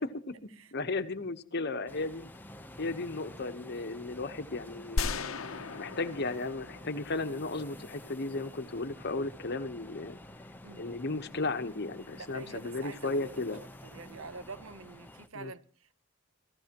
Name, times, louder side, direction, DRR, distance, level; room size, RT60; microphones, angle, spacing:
voice 1, 0.1-2.3 2.8-5.1 5.8-10.2 10.8-13.6 15.3-15.5, left 3 dB, 55° left, 1.0 m, -35 dB
sound 1, 1.9-15.3, left 1 dB, 10° left, 0.7 m, -50 dB
sound 2, 5.0-7.9, left 3 dB, 80° left, 0.9 m, -36 dB
voice 2, 10.6-11.0 12.0-13.3 13.6-16.0, right 4 dB, 75° right, 0.8 m, -47 dB
26.5 x 15.5 x 2.9 m
head